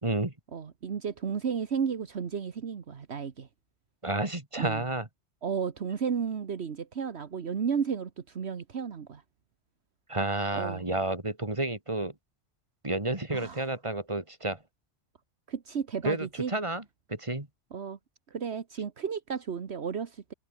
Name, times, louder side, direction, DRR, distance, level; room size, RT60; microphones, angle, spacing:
voice 1, 0.0-0.3 4.0-5.1 10.1-12.1 12.8-14.6 16.0-16.8 17.1-17.5, right 2 dB, 25° right, 3.1 m, -30 dB
voice 2, 0.5-3.5 4.6-4.8 5.4-9.2 10.5-10.8 13.3-13.7 15.5-16.5 17.7-18.0 18.3-20.3, right 6 dB, 70° right, 1.5 m, -33 dB
open air
omnidirectional pair, 1.2 m